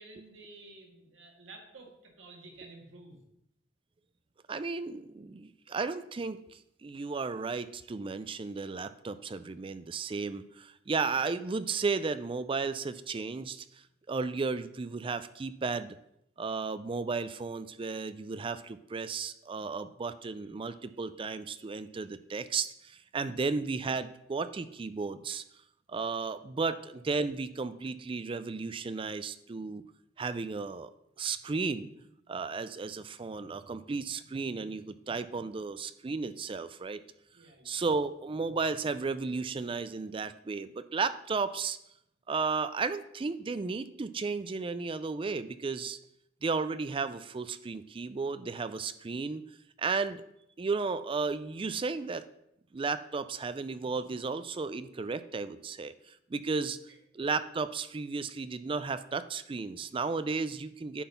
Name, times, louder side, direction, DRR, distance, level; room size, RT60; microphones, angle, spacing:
voice 1, 0.0-3.2 23.3-23.4 37.3-37.8, right 2 dB, 70° right, 1 dB, 2.0 m, -52 dB
voice 2, 4.5-13.7 14.1-16.0 16.4-25.4 25.9-29.8 30.2-30.9 31.2-31.9 32.3-37.0 37.7-41.8 42.3-46.0 46.4-49.4 49.8-50.2 50.6-52.3 52.7-56.8 57.1-61.0, right 4 dB, 25° right, 13 dB, 0.4 m, -34 dB
10.0 x 4.1 x 5.6 m, 0.78 s
head